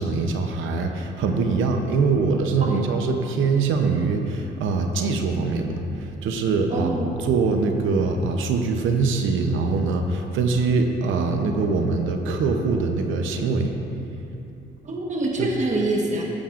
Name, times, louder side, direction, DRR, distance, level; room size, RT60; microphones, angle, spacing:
voice 1, 0.0-6.9 7.2-13.8 15.4-15.5, right 4 dB, 80° right, 4 dB, 0.8 m, -23 dB
voice 2, 6.7-7.1 14.8-16.2, right 2 dB, 35° right, -1 dB, 1.3 m, -25 dB
15.0 x 7.1 x 2.5 m, 2.8 s
cardioid pair, 90°, 20 cm